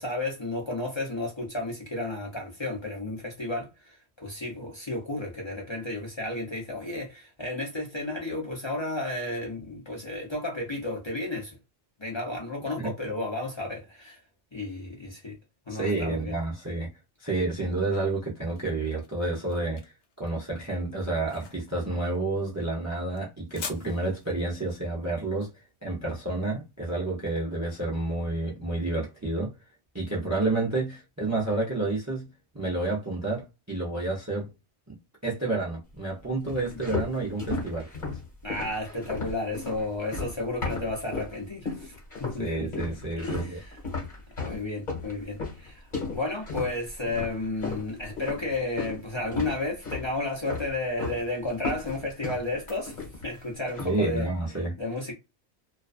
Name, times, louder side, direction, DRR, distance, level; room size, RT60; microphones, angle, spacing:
voice 1, 0.0-11.6 12.0-14.2 14.5-15.4 15.7-16.4 38.4-41.9 42.2-42.7 43.2-43.8 44.4-53.0 53.2-54.3 54.8-55.1, left 2 dB, 30° left, 0.7 m, -32 dB
voice 2, 15.7-16.9 17.2-19.9 20.2-25.5 25.8-29.5 29.9-32.3 32.5-34.5 34.9-35.0 35.2-37.9 42.4-43.6 53.8-54.7, right 2 dB, 20° right, 0.5 m, -29 dB
sound 1, 18.0-27.1, left 6 dB, 80° left, 0.9 m, -46 dB
sound 2, 36.5-41.4 41.7-42.4 42.7-49.0 49.3-50.1 50.5-51.2 51.5-53.4 53.7-54.0, left 4 dB, 50° left, 1.3 m, -35 dB
2.4 x 2.2 x 2.4 m
omnidirectional pair, 1.1 m